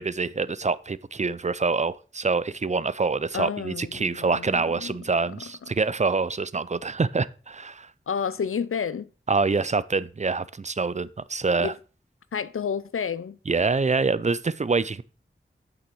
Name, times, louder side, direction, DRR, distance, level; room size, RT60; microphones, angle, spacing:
voice 1, 0.0-7.9 9.3-11.7 13.5-15.0, right 4 dB, 35° right, 0.4 m, -26 dB
voice 2, 3.3-5.0 5.4-5.7 8.1-9.1 11.6-11.7 12.3-13.4, left 6 dB, 80° left, 0.5 m, -30 dB
8.6 x 5.9 x 4.6 m
wide cardioid pair, 60°, 21 cm